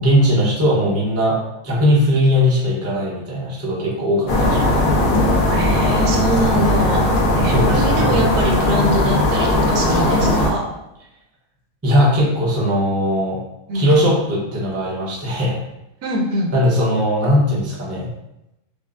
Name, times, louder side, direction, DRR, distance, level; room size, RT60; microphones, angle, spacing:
voice 1, 0.0-1.4 1.6-4.7 7.4-8.1 11.8-13.4 13.7-15.6 16.5-18.1, equal, 15° right, -5 dB, 0.5 m, -18 dB
sound 1, 4.3-10.5, left 1 dB, 60° left, 0.5 m, -17 dB
voice 2, 5.5-7.0 7.4-10.6 13.7-13.9 16.0-16.5, right 2 dB, 80° right, 0 dB, 1.2 m, -23 dB
5.2 x 2.1 x 2.5 m, 0.87 s
omnidirectional pair, 1.6 m